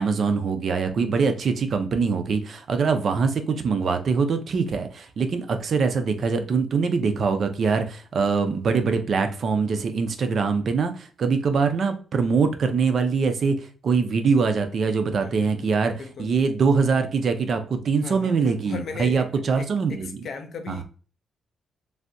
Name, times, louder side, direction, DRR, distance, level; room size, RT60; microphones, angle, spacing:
voice 1, 0.0-13.6 13.8-15.9 16.2-20.1 20.8-20.9, right 5 dB, 45° right, 8 dB, 0.4 m, -23 dB
voice 2, 15.2-15.7 16.0-16.3 18.0-19.3 19.6-20.8, left 5 dB, 50° left, 7 dB, 0.4 m, -37 dB
3.3 x 2.6 x 2.5 m, 0.40 s
cardioid pair, 170°, 0 cm